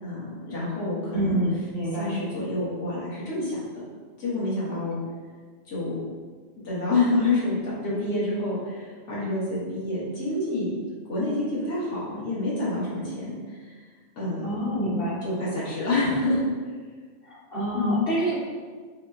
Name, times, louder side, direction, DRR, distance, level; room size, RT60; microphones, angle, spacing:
voice 1, 0.0-1.4 1.9-3.6 4.2-5.0 5.7-6.0 6.6-10.7 11.1-13.8 14.2-14.4 15.2-16.7 17.7-18.1, left 2 dB, 75° left, -8 dB, 1.6 m, -28 dB
voice 2, 1.1-2.2 14.4-15.2 17.2-18.3, right 1 dB, 55° left, -8 dB, 1.3 m, -27 dB
5.2 x 2.2 x 2.6 m, 1.5 s
omnidirectional pair, 1.2 m